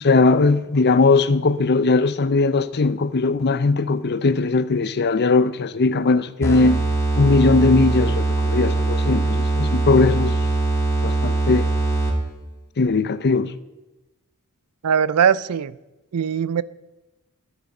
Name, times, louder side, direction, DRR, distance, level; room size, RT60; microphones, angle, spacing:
voice 1, 0.0-6.8 7.2-10.3 11.0-11.7 12.8-13.5, left 3 dB, 50° left, 0.6 m, -19 dB
sound 1, 6.4-12.3, right 2 dB, 15° left, 2.5 m, -21 dB
voice 2, 14.8-15.8 16.1-16.6, right 7 dB, 85° right, 0.5 m, -20 dB
12.5 x 10.5 x 5.4 m
head